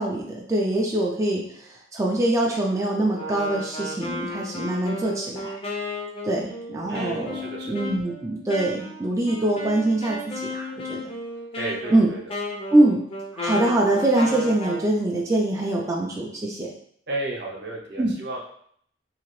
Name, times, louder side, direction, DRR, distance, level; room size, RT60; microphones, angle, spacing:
voice 1, 0.0-5.6 6.2-11.1 11.9-12.1 12.7-13.0 13.3-16.7 18.0-18.1, right 1 dB, 15° right, -2 dB, 0.4 m, -23 dB
Wind instrument woodwind instrument, 3.1-14.9, left 1 dB, 30° left, 0.6 m, -34 dB
voice 2, 6.9-7.8 11.6-12.2 17.1-18.4, right 2 dB, 65° right, -2 dB, 0.8 m, -33 dB
2.8 x 2.8 x 3.0 m, 0.66 s
head